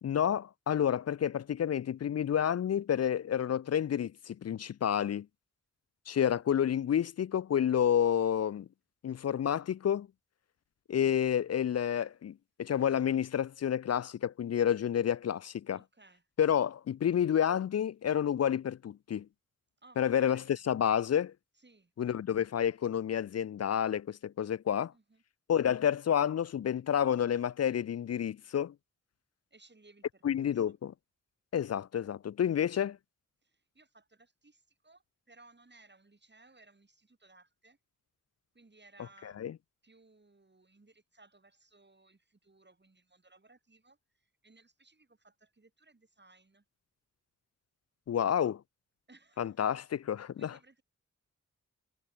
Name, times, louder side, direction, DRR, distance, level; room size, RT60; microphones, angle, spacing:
voice 1, 0.0-5.3 6.1-8.7 9.0-10.1 10.9-15.8 16.4-19.3 20.0-21.3 22.0-24.9 25.5-28.7 30.2-30.9 31.5-33.0 39.4-39.5 48.1-48.6 49.4-49.8 50.1-50.5, left 9 dB, 55° left, 0.4 m, -29 dB
voice 2, 15.7-16.3 19.8-20.6 21.5-21.9 24.9-25.2 29.5-30.7 33.4-37.8 38.5-39.5 39.8-46.6 49.1-49.8 50.4-50.8, right 3 dB, 35° right, 6.1 m, -61 dB
wide cardioid pair, 75°, 31 cm